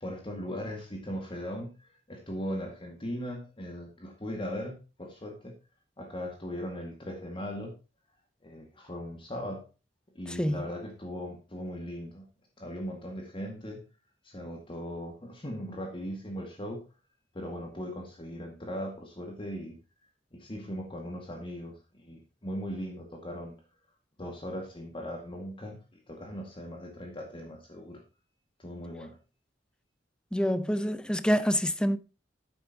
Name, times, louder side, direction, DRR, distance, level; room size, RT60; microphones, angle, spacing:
voice 1, 0.0-5.5 6.0-7.7 8.4-9.6 10.2-12.2 12.6-13.8 14.2-16.9 17.3-19.8 20.3-23.6 24.2-28.0 28.6-29.2, equal, 30° left, 2.0 m, -39 dB
voice 2, 10.3-10.6 30.3-32.0, equal, 5° left, 0.7 m, -27 dB
11.0 x 8.9 x 2.9 m
head